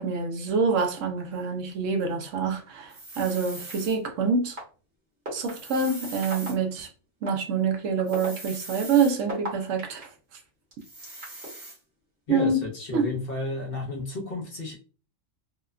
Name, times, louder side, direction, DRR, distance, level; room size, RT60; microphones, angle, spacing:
voice 1, 0.0-4.6 5.3-6.9 7.2-10.1 12.3-12.6 12.9-13.1, right 5 dB, 75° right, 1.0 m, -26 dB
sound 1, 2.9-4.0 5.4-6.6 8.1-9.1 10.8-11.8, right 2 dB, 30° right, 0.7 m, -41 dB
sound 2, 3.7-3.8 4.6-4.7 5.2-5.5 6.2-6.5 7.3-7.4 8.0-10.0 10.7-11.5, right 1 dB, 55° right, 1.4 m, -35 dB
voice 2, 12.3-14.7, left 2 dB, 55° left, 0.8 m, -32 dB
2.8 x 2.1 x 2.3 m
omnidirectional pair, 1.3 m